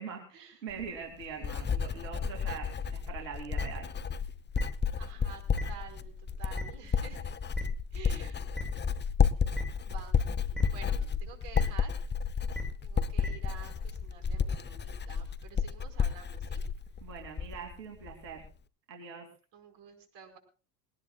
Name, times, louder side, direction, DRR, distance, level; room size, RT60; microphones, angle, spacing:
voice 1, 0.0-3.9 17.0-18.4 18.9-19.3, right 6 dB, 85° right, 2 dB, 3.0 m, -43 dB
Writing, 0.7-17.7 18.0-18.5, left 6 dB, 20° left, 0.9 m, -32 dB
voice 2, 1.3-2.0 5.0-7.3 7.9-8.4 9.7-10.2 10.7-12.0 12.8-16.6 19.5-20.4, right 8 dB, 55° right, 5 dB, 5.1 m, -50 dB
sound 1, 3.5-3.6 4.5-4.6 5.5-5.6 6.5-6.6 7.5-7.6 8.5-8.6 9.5-9.6 10.5-10.6 11.5-11.6 12.5-12.6 13.2-13.3, left 1 dB, ahead, 7.5 m, -34 dB
21.0 x 18.5 x 2.4 m, 0.35 s
hypercardioid pair, 85°, 49 cm